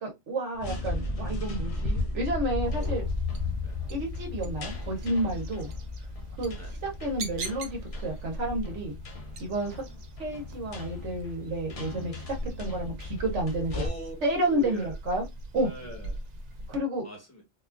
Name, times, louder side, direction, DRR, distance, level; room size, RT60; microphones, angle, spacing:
voice 1, 0.0-3.0 3.9-5.7 6.4-6.5 6.8-8.9 9.4-9.8 10.2-12.2 12.6-13.7 14.2-15.2 15.5-15.7 16.7-17.0, right 1 dB, 85° right, 1.2 m, -30 dB
sound 1, 0.5-13.9, left 2 dB, 45° left, 0.5 m, -35 dB
voice 2, 2.6-3.1 3.6-3.8 6.6-6.8 9.7-10.0 13.7-14.1 14.5-15.0 15.6-16.2 17.0-17.4, left 1 dB, 15° left, 1.1 m, -41 dB
sound 2, 2.6-16.8, right 2 dB, 50° right, 0.6 m, -42 dB
3.7 x 2.3 x 2.4 m
omnidirectional pair, 1.2 m